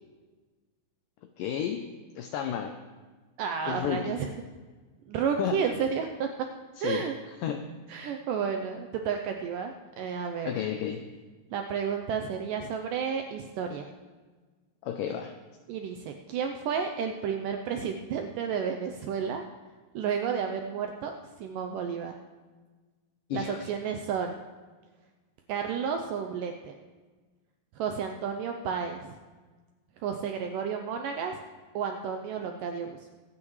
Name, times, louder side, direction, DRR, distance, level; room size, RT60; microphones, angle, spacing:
voice 1, 1.4-2.8 3.7-4.2 5.4-5.6 6.8-7.1 7.4-7.6 10.5-11.0 14.8-15.3 23.3-23.7, left 9 dB, 85° left, 6 dB, 1.9 m, -32 dB
voice 2, 3.4-4.3 5.1-6.3 6.8-7.1 7.9-10.5 11.5-13.9 15.7-19.4 20.0-21.1 21.4-22.1 23.3-24.4 25.5-26.8 27.8-29.1 30.0-31.4 31.8-33.2, right 7 dB, 85° right, 4 dB, 1.9 m, -31 dB
24.0 x 8.6 x 3.1 m, 1.4 s
omnidirectional pair, 4.5 m